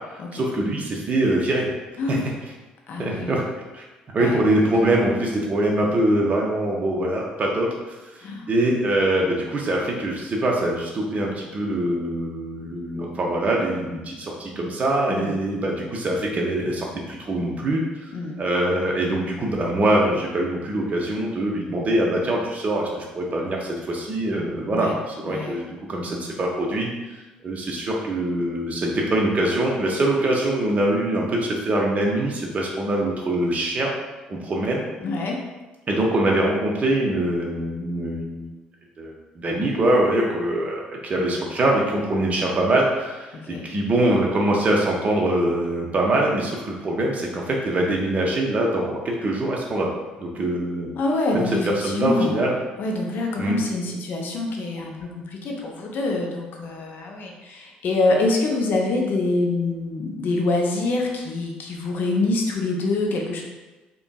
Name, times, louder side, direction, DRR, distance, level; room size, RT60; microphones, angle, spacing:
voice 1, 0.1-1.7 2.1-2.2 3.0-3.4 3.7-3.8 4.1-33.9 34.3-34.8 35.9-38.4 39.0-49.9 50.2-50.9 51.3-52.6 53.4-53.6, right 1 dB, 35° right, -1 dB, 0.5 m, -23 dB
voice 2, 2.9-3.4 4.2-4.4 8.2-8.5 15.1-15.4 18.1-18.4 24.7-25.0 25.2-25.6 35.0-35.4 43.5-43.7 50.9-52.4 52.8-63.4, left 2 dB, 55° left, 0 dB, 0.5 m, -25 dB
3.0 x 2.5 x 2.2 m, 1.2 s
hypercardioid pair, 50°, 4 cm